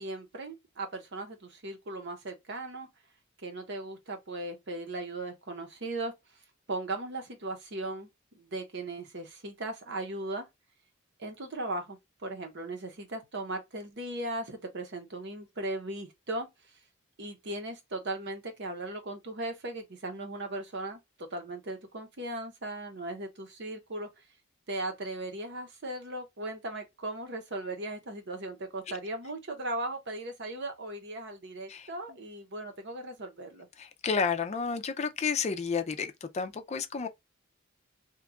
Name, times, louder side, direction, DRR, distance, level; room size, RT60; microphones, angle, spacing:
voice 1, 0.0-2.9 3.4-6.1 6.7-8.1 8.3-10.4 11.2-16.5 17.2-24.1 24.7-33.7, right 2 dB, 60° right, 0.9 m, -37 dB
voice 2, 31.7-32.2 33.8-37.1, left 5 dB, 35° left, 0.4 m, -31 dB
2.9 x 2.3 x 3.6 m
head